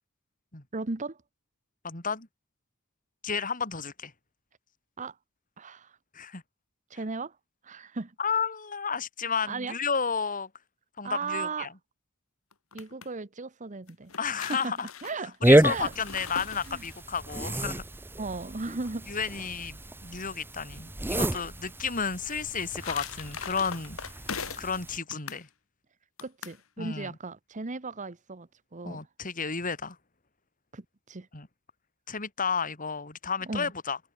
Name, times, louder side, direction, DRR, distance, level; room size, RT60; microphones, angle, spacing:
voice 1, 0.7-1.2 5.0-5.2 5.6-6.0 6.9-7.4 7.6-8.1 9.5-9.7 11.0-11.7 12.7-14.1 14.5-14.8 15.0-15.4 15.6-15.9 16.7-16.8 18.2-19.1 26.2-29.0 30.7-31.3 33.4-33.7, right 3 dB, 35° right, 1.0 m, -36 dB
voice 2, 1.8-2.3 3.2-4.1 6.1-6.4 8.2-10.5 11.0-11.7 14.2-14.9 15.4-17.8 19.1-24.0 24.6-25.5 26.8-27.2 28.9-30.0 31.3-31.5 32.1-34.0, left 5 dB, 40° left, 3.6 m, -32 dB
sound 1, 12.5-13.1 13.9-17.2 22.3-24.8 25.1-25.5 26.2-26.6, left 6 dB, 85° left, 2.4 m, -40 dB
sound 2, 15.4-25.0, right 1 dB, 10° right, 1.1 m, -29 dB
head